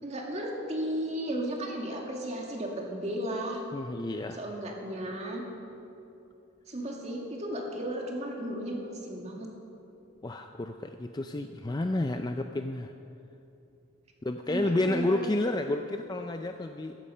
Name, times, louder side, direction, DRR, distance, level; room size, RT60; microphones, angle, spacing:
voice 1, 0.0-3.6 4.3-5.4 6.7-9.5 14.5-15.3, right 1 dB, 35° right, 0 dB, 2.1 m, -34 dB
voice 2, 3.7-4.4 10.2-12.9 14.2-17.0, left 2 dB, 20° left, 6 dB, 0.4 m, -30 dB
14.0 x 13.5 x 5.6 m, 2.8 s
head